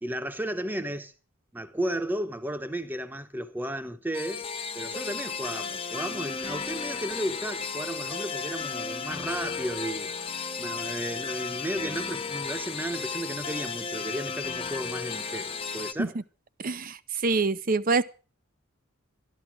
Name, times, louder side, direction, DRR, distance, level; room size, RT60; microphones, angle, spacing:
voice 1, 0.0-1.1 1.5-4.5 4.7-10.1 10.6-16.2, right 1 dB, 10° right, 1.0 m, -34 dB
sound 1, 4.1-15.9, left 5 dB, 25° left, 0.8 m, -34 dB
voice 2, 16.6-18.0, right 4 dB, 40° right, 0.6 m, -26 dB
12.5 x 12.5 x 6.1 m
head